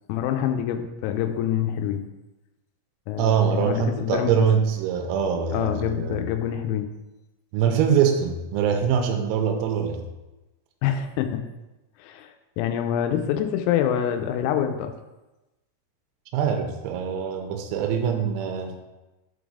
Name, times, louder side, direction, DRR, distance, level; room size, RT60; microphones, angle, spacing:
voice 1, 0.1-2.1 3.1-4.5 5.5-6.9 10.8-11.4 12.0-14.9, left 9 dB, 90° left, 7 dB, 3.3 m, -26 dB
voice 2, 3.2-6.2 7.5-10.1 16.3-18.8, right 7 dB, 90° right, 5 dB, 3.5 m, -23 dB
7.6 x 4.0 x 4.8 m, 1.0 s
omnidirectional pair, 6.0 m